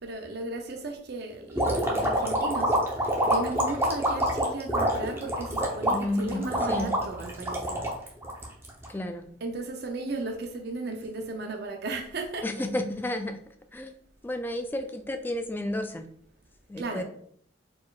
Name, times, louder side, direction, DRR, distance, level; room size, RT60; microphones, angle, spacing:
voice 1, 0.0-2.7 3.0-7.8 9.4-12.7 16.8-17.0, right 2 dB, 60° right, 3 dB, 0.6 m, -35 dB
sound 1, 1.6-8.9, equal, 15° right, 0.8 m, -26 dB
voice 2, 5.9-6.9 8.9-9.2 12.4-13.4 13.7-13.9 14.2-16.1 16.7-17.0, left 1 dB, 10° left, 7 dB, 0.3 m, -31 dB
4.5 x 4.2 x 2.4 m, 0.63 s
head